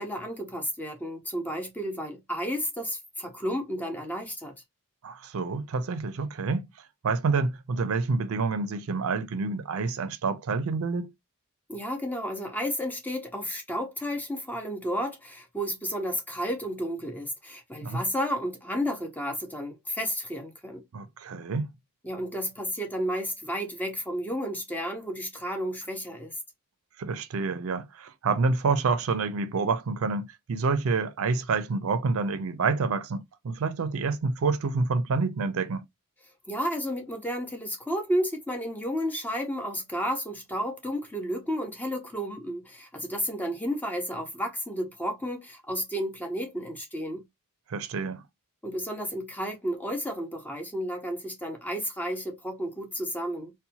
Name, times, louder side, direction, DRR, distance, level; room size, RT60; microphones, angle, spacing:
voice 1, 0.0-4.6 11.7-20.8 22.0-26.4 36.5-47.2 48.6-53.5, equal, 10° left, 0.4 m, -32 dB
voice 2, 5.0-6.7 7.0-11.1 17.8-18.0 20.9-21.7 27.0-35.8 47.7-48.2, right 4 dB, 65° right, 0.4 m, -28 dB
2.6 x 2.1 x 2.7 m
head